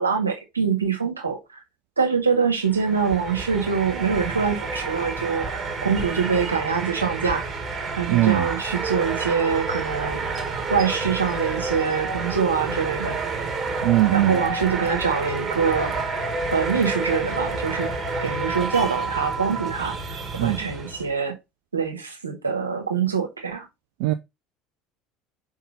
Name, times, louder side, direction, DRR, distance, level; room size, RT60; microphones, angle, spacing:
voice 1, 0.0-1.6 2.0-7.4 7.9-10.2 10.7-13.1 14.1-15.9 16.5-17.9 18.2-20.0 20.4-21.3 21.7-23.6, right 6 dB, 85° right, 1.7 m, -24 dB
sound 1, 2.6-21.1, right 3 dB, 30° right, 2.2 m, -29 dB
voice 2, 8.1-8.5 13.8-14.4 20.4-20.6 24.0-24.1, right 16 dB, 60° right, 0.5 m, -20 dB
5.8 x 3.8 x 5.3 m
figure-of-eight pair, 65°, 0 cm